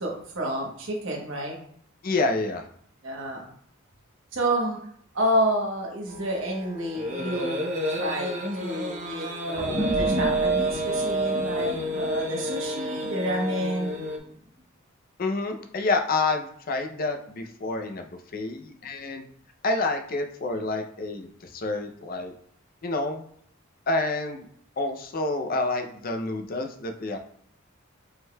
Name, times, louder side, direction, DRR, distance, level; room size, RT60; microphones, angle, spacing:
voice 1, 0.0-1.6 3.0-3.5 4.3-4.8 5.1-7.6 8.0-13.9, right 1 dB, 65° right, -1 dB, 1.0 m, -29 dB
voice 2, 2.0-2.6 15.2-19.2 19.6-22.3 22.8-23.2 23.9-24.5 24.8-27.2, left 3 dB, 45° left, 5 dB, 0.5 m, -28 dB
sound 1, 6.1-14.2, right 1 dB, 35° right, 0.6 m, -29 dB
sound 2, 9.5-14.3, equal, 15° right, 1.3 m, -34 dB
5.3 x 3.8 x 2.2 m, 0.64 s
head